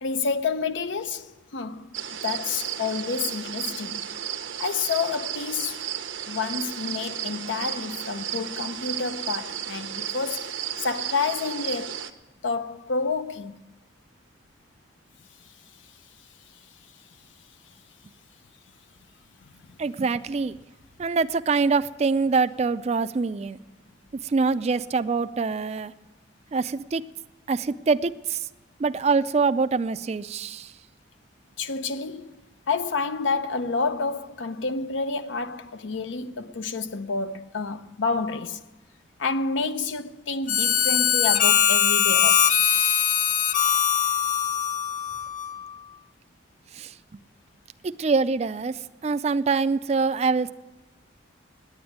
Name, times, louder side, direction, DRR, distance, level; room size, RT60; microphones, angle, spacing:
voice 1, 0.0-1.9 2.2-4.0 4.6-5.9 6.3-12.1 12.4-13.6 31.6-32.4 32.7-38.6 39.2-42.9, left 4 dB, 80° left, 0.7 m, -29 dB
sound 1, 1.9-12.1, right 10 dB, 85° right, 0.8 m, -33 dB
voice 2, 19.8-20.6 21.0-23.6 24.2-25.9 26.5-27.0 27.5-28.4 28.8-30.7 46.7-46.9 47.8-50.5, right 4 dB, 35° right, 0.3 m, -24 dB
Harmonica, 40.5-45.7, left 8 dB, 45° left, 0.6 m, -21 dB
9.6 x 9.4 x 9.2 m
head